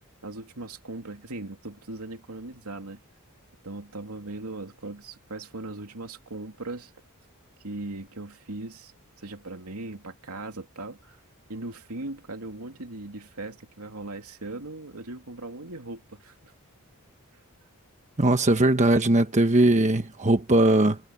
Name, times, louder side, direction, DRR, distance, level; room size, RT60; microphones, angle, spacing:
voice 1, 0.2-3.0 3.6-6.9 7.6-8.9 9.2-11.2 11.5-16.5, right 2 dB, 75° right, 2.8 m, -39 dB
voice 2, 18.2-21.0, right 1 dB, 30° right, 1.2 m, -20 dB
head